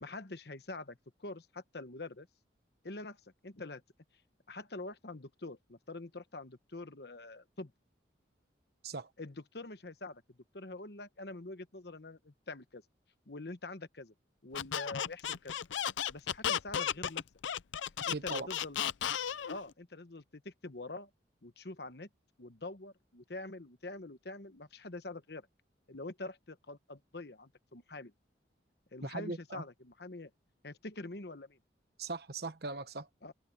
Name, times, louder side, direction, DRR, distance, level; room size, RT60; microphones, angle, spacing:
voice 1, 0.0-2.3 2.8-3.8 4.5-7.7 9.2-12.8 13.3-14.1 14.4-15.5 16.1-17.2 18.0-18.8 19.5-21.1 21.4-22.1 22.4-25.5 25.9-28.1 28.9-30.3 30.6-31.6 33.2-33.3, left 2 dB, 60° left, 1.1 m, -45 dB
Squeak, 14.5-19.6, left 9 dB, 85° left, 0.5 m, -34 dB
voice 2, 18.1-18.5 29.0-29.6 32.0-33.1, right 3 dB, 55° right, 1.2 m, -39 dB
head